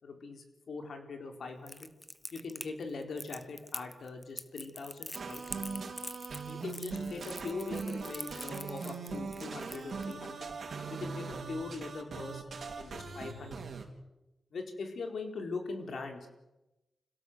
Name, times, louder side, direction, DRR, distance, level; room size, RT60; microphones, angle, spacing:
voice 1, 0.0-1.9 2.3-5.4 6.5-10.5 10.9-12.4 12.8-13.7 14.5-16.3, left 4 dB, 75° left, 4 dB, 4.3 m, -41 dB
Crackle, 1.7-10.1, left 1 dB, 15° left, 1.3 m, -44 dB
sound 1, 5.1-13.9, right 4 dB, 65° right, 4.0 m, -40 dB
26.5 x 17.0 x 8.1 m, 0.99 s
cardioid pair, 65°, 0 cm